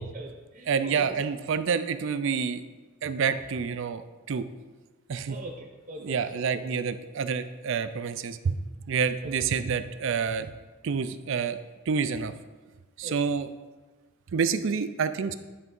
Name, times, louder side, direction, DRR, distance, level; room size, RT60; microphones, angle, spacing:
voice 1, 0.0-1.2 5.3-6.6 13.0-13.1, right 2 dB, 40° right, 0 dB, 0.8 m, -42 dB
voice 2, 0.7-2.6 3.0-4.5 5.1-5.4 6.0-8.6 8.9-10.5 10.8-11.6 11.9-12.3 13.0-13.5 14.3-15.3, right 6 dB, 60° right, 12 dB, 0.4 m, -28 dB
9.9 x 3.5 x 5.3 m, 1.3 s
head